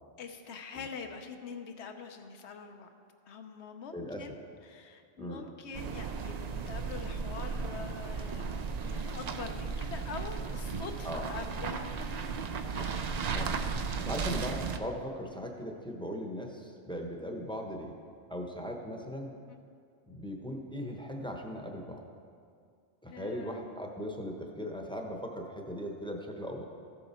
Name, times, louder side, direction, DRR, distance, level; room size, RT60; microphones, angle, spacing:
voice 1, 0.2-2.9 3.3-12.1 12.7-13.4 19.5-19.6 23.1-23.8, left 5 dB, 85° left, 6 dB, 1.1 m, -45 dB
voice 2, 3.9-4.3 5.2-5.5 11.0-11.2 12.7-13.5 14.0-17.9 18.3-19.3 20.1-22.0 23.0-26.6, equal, 5° left, 1 dB, 0.8 m, -39 dB
sound 1, 5.7-14.8, right 5 dB, 55° right, 0.4 m, -35 dB
14.0 x 7.0 x 4.3 m, 2.3 s
omnidirectional pair, 1.1 m